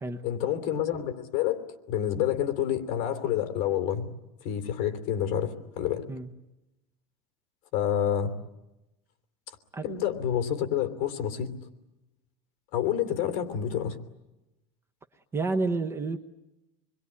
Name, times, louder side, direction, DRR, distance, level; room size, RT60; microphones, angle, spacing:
voice 1, 0.2-1.6 1.9-4.1 4.4-6.0 7.7-8.3 9.8-11.5 12.7-14.0, left 10 dB, 45° left, 8 dB, 3.0 m, -28 dB
voice 2, 15.3-16.2, right 3 dB, 15° right, 7 dB, 0.9 m, -29 dB
27.0 x 22.0 x 9.8 m, 0.98 s
cardioid pair, 170°, 17 cm